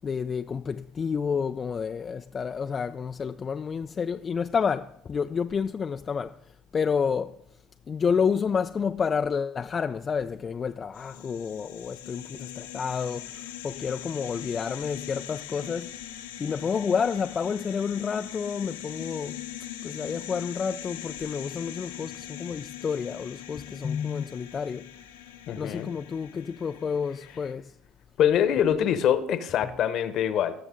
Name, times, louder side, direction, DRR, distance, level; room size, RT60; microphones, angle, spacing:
voice 1, 0.0-6.3 6.7-7.3 7.9-13.2 13.6-15.9 16.4-19.4 19.8-24.8 25.6-27.7, left 6 dB, 35° left, 0.4 m, -29 dB
sound 1, 10.9-27.5, left 11 dB, 85° left, 0.9 m, -41 dB
voice 2, 25.5-25.9 28.2-30.5, left 9 dB, 55° left, 1.1 m, -24 dB
19.0 x 6.9 x 3.8 m
hypercardioid pair, 70°, 0 cm